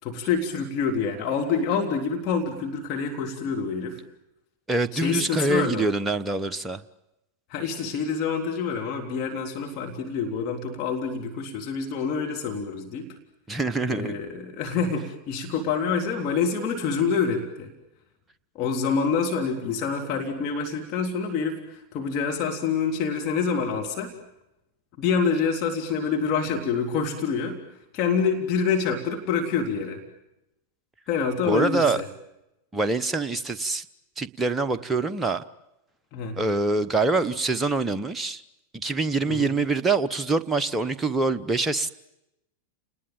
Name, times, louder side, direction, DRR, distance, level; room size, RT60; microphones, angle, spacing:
voice 1, 0.0-4.0 4.9-5.9 7.5-13.1 13.9-17.7 18.5-24.1 25.0-27.6 27.9-30.0 31.1-32.1 36.1-36.4 39.3-39.5, left 5 dB, 40° left, 3.3 m, -27 dB
voice 2, 4.7-6.8 13.5-14.1 31.5-32.0 32.7-33.8 34.2-35.4 36.4-38.4 38.7-41.9, right 3 dB, 10° right, 1.1 m, -25 dB
29.5 x 20.0 x 9.1 m
figure-of-eight pair, 90°, 0 cm